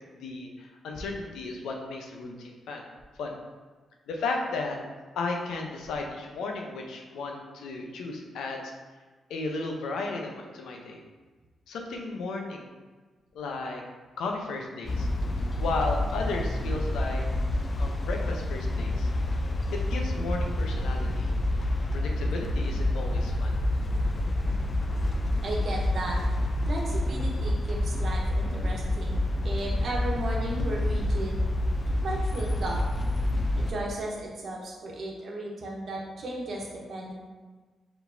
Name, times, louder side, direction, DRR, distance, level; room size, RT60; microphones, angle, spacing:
voice 1, 0.1-2.8 3.2-3.4 4.1-4.8 5.2-8.7 9.3-11.0 11.7-12.7 13.3-13.8 14.2-15.1 15.6-17.2 17.8-19.1 19.7-21.3 21.9-23.5, left 3 dB, 90° left, 1 dB, 0.6 m, -34 dB
sound 1, 14.8-33.7, left 1 dB, 40° left, 0.4 m, -28 dB
voice 2, 25.4-26.2 26.7-31.4 32.0-32.8 33.6-37.1, right 1 dB, 65° right, -2 dB, 1.1 m, -35 dB
4.7 x 3.8 x 2.6 m, 1.3 s
cardioid pair, 70°, 0 cm